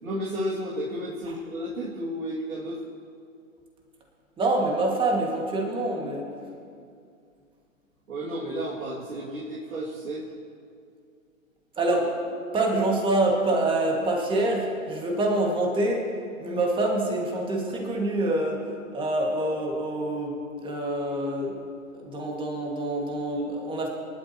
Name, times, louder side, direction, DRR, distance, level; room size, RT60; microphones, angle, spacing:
voice 1, 0.0-2.8 8.1-10.2, equal, 80° right, -5 dB, 2.6 m, -32 dB
voice 2, 4.4-6.2 11.8-12.1 12.5-16.0 16.4-18.6 18.9-20.3 20.6-21.6 22.0-23.9, right 2 dB, 10° right, -1 dB, 2.0 m, -26 dB
23.5 x 11.5 x 3.0 m, 2.4 s
hypercardioid pair, 130°, 41 cm